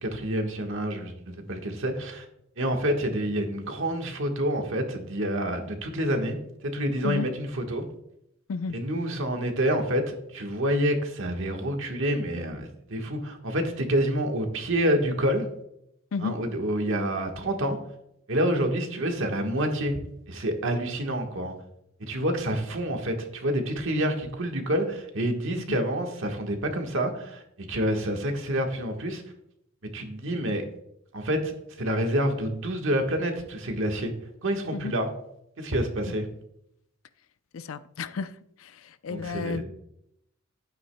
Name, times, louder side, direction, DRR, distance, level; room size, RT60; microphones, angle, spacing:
voice 1, 0.0-2.2 2.6-6.4 6.6-7.8 8.7-15.5 16.2-17.8 18.3-20.0 20.3-21.5 22.0-29.2 29.9-30.6 31.1-34.1 34.4-35.1 35.6-36.3 39.1-39.6, equal, 65° right, 1.4 m, -28 dB
voice 2, 16.1-16.4 22.5-22.6 25.7-25.8 34.7-34.9 36.1-36.2 37.5-38.3 38.6-39.6, left 5 dB, 70° left, 0.5 m, -33 dB
11.5 x 9.2 x 2.2 m
head